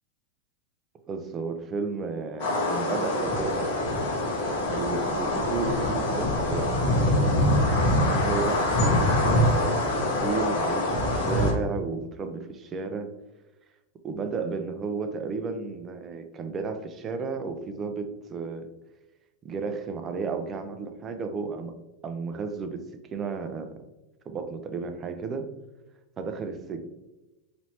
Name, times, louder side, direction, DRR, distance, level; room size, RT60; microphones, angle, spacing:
voice 1, 1.1-3.8 4.7-7.4 8.0-13.1 14.0-18.7 19.4-21.7 22.0-22.8 23.1-23.7 24.3-25.5 26.2-26.9, right 4 dB, 25° right, 7 dB, 0.4 m, -33 dB
sound 1, 2.4-11.5, left 1 dB, 65° left, 1.2 m, -24 dB
4.2 x 3.1 x 2.8 m, 1.0 s
supercardioid pair, 140°, 0 cm